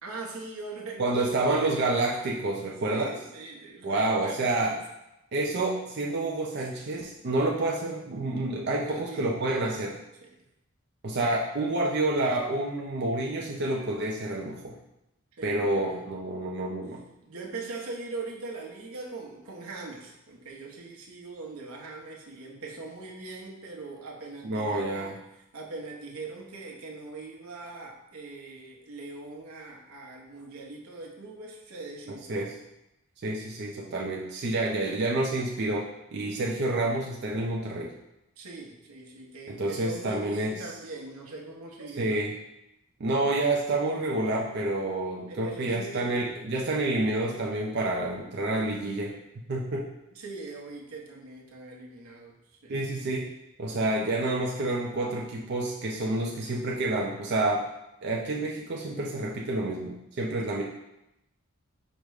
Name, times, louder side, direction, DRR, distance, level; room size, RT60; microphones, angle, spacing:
voice 1, 0.0-1.9 2.8-4.8 6.6-6.7 8.6-9.3 10.2-10.3 15.4-16.5 17.2-25.2 25.5-32.5 38.4-42.3 45.3-46.2 50.1-52.3 52.6-52.8, right 3 dB, 90° right, -1 dB, 0.9 m, -41 dB
voice 2, 1.0-3.2 3.8-4.7 5.3-10.0 11.0-14.7 15.4-17.0 24.4-25.1 32.3-32.5 33.2-37.9 39.5-40.5 42.0-42.3 43.0-49.1 49.5-49.9 52.7-53.3 53.6-57.6 58.0-60.6, right 2 dB, 50° right, -2 dB, 0.4 m, -28 dB
5.0 x 2.1 x 4.7 m, 0.87 s
head